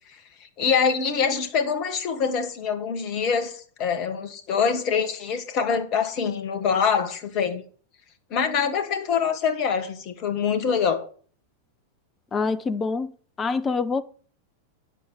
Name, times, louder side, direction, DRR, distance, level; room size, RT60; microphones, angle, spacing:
voice 1, 0.6-7.6 8.3-11.1, left 6 dB, 40° left, 2.2 m, -24 dB
voice 2, 12.3-13.1 13.4-14.0, left 4 dB, 20° left, 1.1 m, -25 dB
9.8 x 7.8 x 7.7 m
figure-of-eight pair, 90°, 0 cm